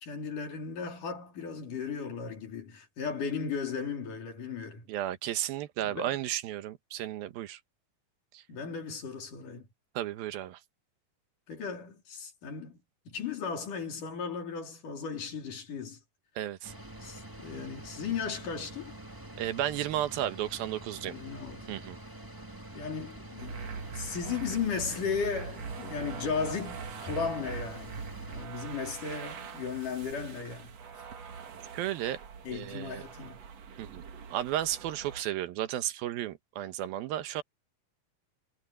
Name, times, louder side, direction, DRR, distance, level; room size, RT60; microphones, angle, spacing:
voice 1, 0.0-4.9 5.8-6.2 8.5-9.7 11.5-12.8 13.1-16.0 17.0-18.9 21.0-21.8 22.7-23.6 23.9-28.0 28.3-30.7 32.4-33.4, left 6 dB, 65° left, 5.0 m, -36 dB
voice 2, 4.9-7.6 8.3-8.4 10.0-10.6 16.4-16.7 19.4-21.2 21.7-22.0 31.7-32.2 32.5-33.0 33.8-34.0 34.3-37.4, right 12 dB, 90° right, 3.0 m, -33 dB
sound 1, 16.6-28.5, right 1 dB, 15° right, 0.7 m, -46 dB
sound 2, 23.4-35.2, right 6 dB, 50° right, 2.7 m, -43 dB
omnidirectional pair, 4.1 m